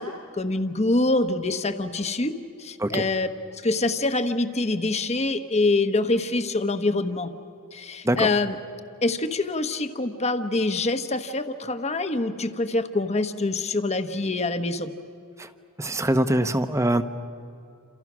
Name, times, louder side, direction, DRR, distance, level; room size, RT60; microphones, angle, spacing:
voice 1, 0.0-2.3 2.6-3.3 3.6-7.3 7.7-8.6 9.0-14.9, left 2 dB, 30° left, 9 dB, 1.1 m, -25 dB
voice 2, 15.8-17.0, right 1 dB, 15° right, 10 dB, 0.9 m, -23 dB
29.5 x 27.5 x 6.2 m, 2.6 s
head